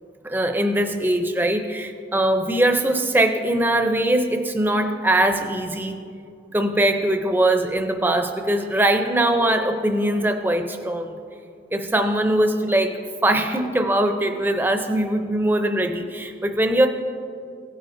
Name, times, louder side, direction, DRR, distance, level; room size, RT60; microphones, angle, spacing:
voice 1, 0.2-6.1 6.5-11.2 11.7-16.9, right 1 dB, 10° right, 6 dB, 0.5 m, -21 dB
17.0 x 9.1 x 2.6 m, 2.3 s
head